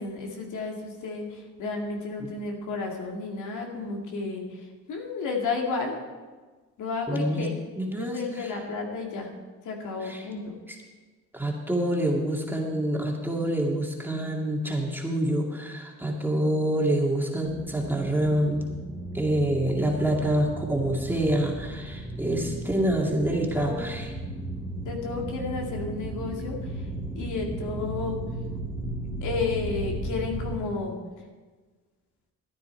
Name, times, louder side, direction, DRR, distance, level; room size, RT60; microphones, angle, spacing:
voice 1, 0.0-6.0 6.8-7.6 8.0-9.3 9.6-10.5 23.3-23.9 24.8-26.8 27.1-28.2 29.2-31.0, left 4 dB, 80° left, 1 dB, 2.4 m, -32 dB
voice 2, 7.1-7.5 7.8-8.5 10.0-10.2 11.3-18.7 19.1-24.1, right 1 dB, 5° right, -1 dB, 2.3 m, -26 dB
sound 1, 17.5-30.6, right 1 dB, 15° left, 2.9 m, -35 dB
14.0 x 9.7 x 4.5 m, 1.4 s
cardioid pair, 90°, 30 cm